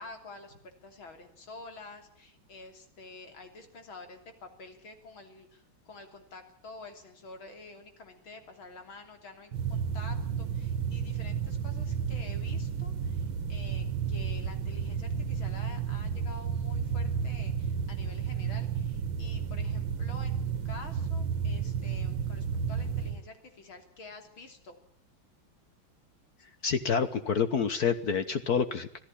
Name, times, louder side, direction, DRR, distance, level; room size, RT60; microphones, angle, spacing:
voice 1, 0.0-20.4 20.7-24.8, left 3 dB, 80° left, 6 dB, 4.0 m, -49 dB
sound 1, 9.5-23.2, right 7 dB, 75° right, 2.1 m, -32 dB
voice 2, 26.6-29.0, left 6 dB, 55° left, 11 dB, 1.5 m, -28 dB
26.0 x 15.5 x 10.0 m, 0.64 s
omnidirectional pair, 2.2 m